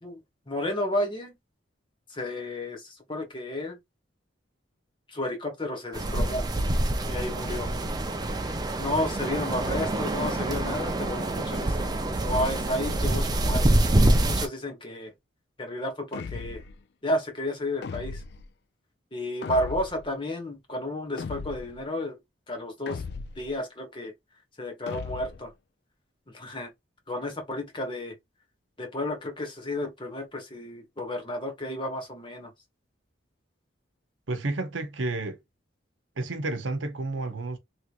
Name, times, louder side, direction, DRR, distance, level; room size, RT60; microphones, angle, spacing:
voice 1, 0.5-1.4 2.1-3.8 5.1-6.5 7.1-7.7 8.8-13.7 14.3-15.1 15.6-16.6 17.0-18.2 19.1-22.2 22.5-23.0 23.4-24.1 24.6-25.5 26.3-26.7 27.1-28.2 28.8-32.5, left 1 dB, 25° left, 1.1 m, -32 dB
sound 1, 5.9-14.5, right 1 dB, 20° right, 0.4 m, -26 dB
sound 2, 16.1-16.8 17.8-18.5 19.4-20.1 21.2-21.8 22.9-23.5 24.9-25.5, left 4 dB, 55° left, 0.3 m, -37 dB
voice 2, 34.3-35.4 36.2-37.6, right 2 dB, 75° right, 0.8 m, -31 dB
3.1 x 2.9 x 2.4 m
head